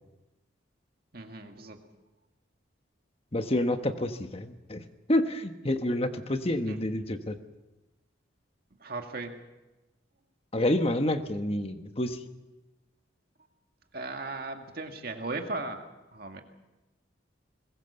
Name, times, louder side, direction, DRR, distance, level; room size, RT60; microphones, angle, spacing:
voice 1, 1.1-1.8 6.4-6.8 8.8-9.3 13.9-16.4, right 3 dB, 50° right, 4 dB, 2.1 m, -37 dB
voice 2, 3.3-7.4 10.5-12.2, left 1 dB, 30° left, 8 dB, 1.3 m, -28 dB
22.0 x 21.0 x 7.0 m, 1.0 s
head